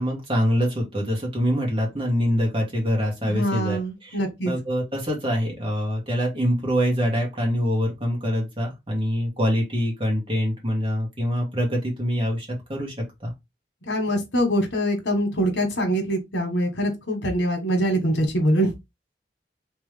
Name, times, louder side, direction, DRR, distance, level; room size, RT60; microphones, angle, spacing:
voice 1, 0.0-4.2 4.4-12.9 13.2-13.3, equal, 30° right, 1.7 m, -25 dB
voice 2, 3.2-4.5 13.9-18.7, equal, 90° left, 1.4 m, -24 dB
3.4 x 3.3 x 3.3 m
head